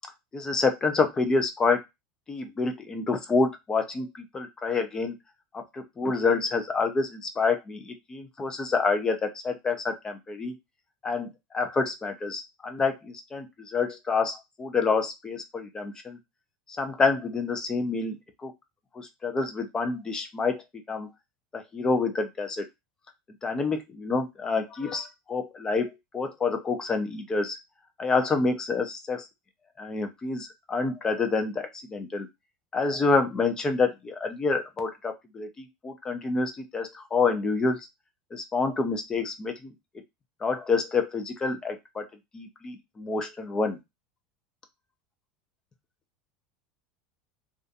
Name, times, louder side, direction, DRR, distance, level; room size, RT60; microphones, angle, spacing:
voice 1, 0.3-1.8 2.3-4.1 4.3-5.2 5.5-10.5 11.0-11.3 11.5-12.9 13.3-13.5 13.7-16.2 16.8-18.2 18.4-18.5 19.0-20.6 20.9-21.1 21.5-22.6 23.4-27.6 28.0-29.2 29.8-32.3 32.7-37.8 38.3-39.7 40.4-42.0 42.3-43.8, left 4 dB, 20° left, 6 dB, 0.5 m, -27 dB
2.5 x 2.3 x 2.5 m, 0.21 s
supercardioid pair, 125°, 3 cm